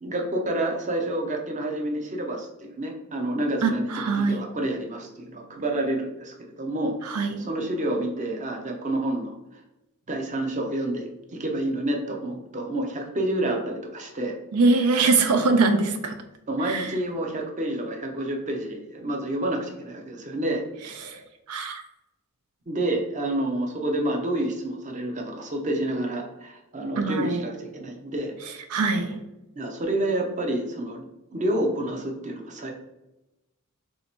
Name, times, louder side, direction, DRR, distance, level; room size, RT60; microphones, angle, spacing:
voice 1, 0.0-7.0 7.4-9.6 10.1-14.4 16.5-20.9 22.7-28.4 29.6-31.0 31.3-32.7, right 1 dB, 35° right, 2 dB, 0.6 m, -29 dB
voice 2, 3.6-4.4 7.0-7.5 14.5-16.2 16.6-17.0 21.0-21.8 27.0-27.4 28.7-29.2, right 3 dB, 80° right, 7 dB, 0.4 m, -23 dB
3.2 x 2.8 x 4.3 m, 0.95 s
head